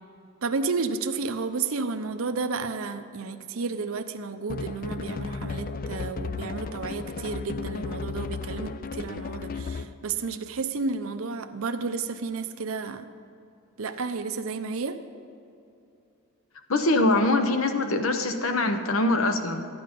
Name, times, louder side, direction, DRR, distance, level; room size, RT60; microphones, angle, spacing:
voice 1, 0.4-13.1 13.8-15.0, right 4 dB, 70° right, 8 dB, 0.6 m, -32 dB
sound 1, 4.5-10.0, left 4 dB, 40° left, 0.4 m, -34 dB
voice 2, 16.7-19.7, left 2 dB, 65° left, 7 dB, 0.9 m, -23 dB
13.0 x 9.3 x 5.2 m, 2.6 s
head